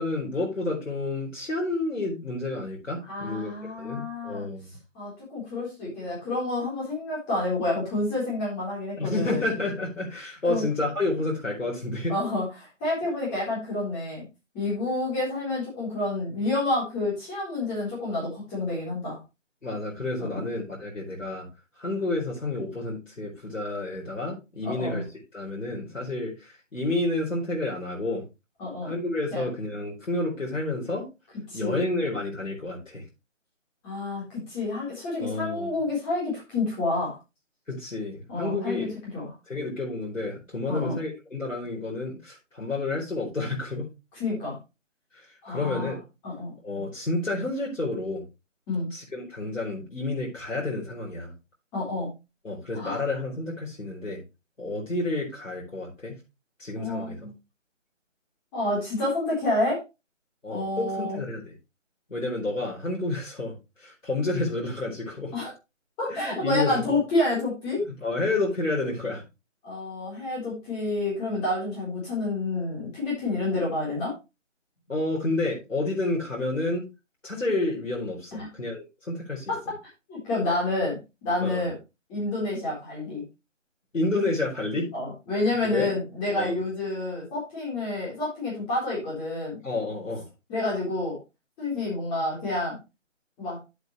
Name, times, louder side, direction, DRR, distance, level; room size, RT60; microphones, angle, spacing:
voice 1, 0.0-3.5 3.8-4.7 9.0-12.1 19.6-21.5 21.8-25.0 25.3-28.2 28.8-31.0 31.5-33.0 35.2-35.7 37.7-38.9 39.5-43.9 45.1-46.0 46.6-48.2 48.9-51.3 52.4-54.2 54.6-56.2 56.6-57.2 60.4-61.5 62.1-65.3 66.1-67.0 68.0-69.2 74.9-76.8 77.2-79.5 81.4-81.7 83.9-84.9 85.6-85.9 86.4-86.6 89.6-90.2, left 2 dB, 90° left, -3 dB, 4.3 m, -30 dB
voice 2, 3.1-4.5 4.9-9.5 10.5-10.7 12.1-14.2 14.5-19.2 20.2-20.4 24.6-25.0 28.6-28.9 29.3-29.5 31.5-31.8 33.8-37.2 38.3-39.3 40.7-41.0 44.2-44.6 45.4-46.0 46.2-46.5 48.7-48.9 51.7-52.1 52.7-53.0 56.8-57.3 58.5-59.8 60.5-61.2 65.3-65.5 66.0-67.8 69.6-74.1 78.3-78.5 79.5-79.6 80.1-81.8 82.1-83.2 84.9-89.6 90.5-91.2 91.6-92.8 93.4-93.6, left 2 dB, 10° left, -5 dB, 3.8 m, -29 dB
9.8 x 7.9 x 3.1 m, 0.25 s
figure-of-eight pair, 165°, 38 cm